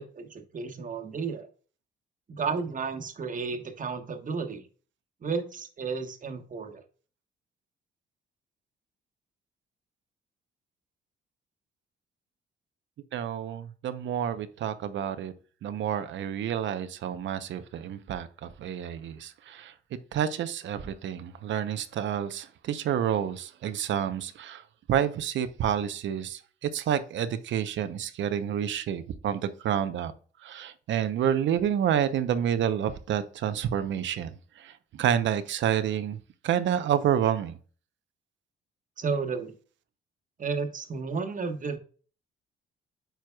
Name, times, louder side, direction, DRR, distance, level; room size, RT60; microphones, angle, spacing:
voice 1, 0.0-1.5 2.3-4.6 5.2-6.8 39.0-39.5 40.4-41.8, right 5 dB, 40° right, 1.3 m, -32 dB
voice 2, 13.1-15.3 15.6-19.7 20.1-24.6 24.9-30.1 30.4-34.3 34.6-36.2 36.4-37.5, right 9 dB, 70° right, 0.7 m, -29 dB
9.0 x 4.7 x 2.3 m
cardioid pair, 90°, 20 cm